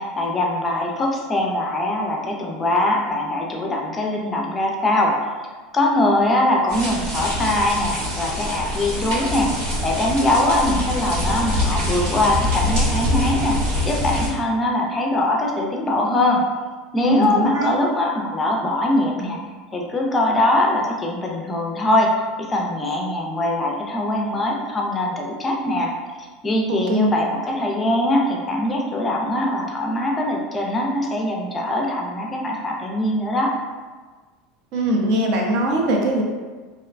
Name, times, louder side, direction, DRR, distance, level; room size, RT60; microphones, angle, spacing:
voice 1, 0.0-5.2 5.7-9.5 9.8-13.6 13.8-16.4 16.9-19.4 19.7-22.1 22.4-25.9 26.4-33.5, left 1 dB, 20° left, 0 dB, 0.4 m, -22 dB
sound 1, 6.7-14.3, left 1 dB, 85° right, 1.3 m, -24 dB
voice 2, 17.0-17.8 26.7-27.1 34.7-36.2, right 1 dB, 60° right, 0 dB, 0.5 m, -21 dB
2.5 x 2.1 x 2.4 m, 1.4 s
supercardioid pair, 120°, 0 cm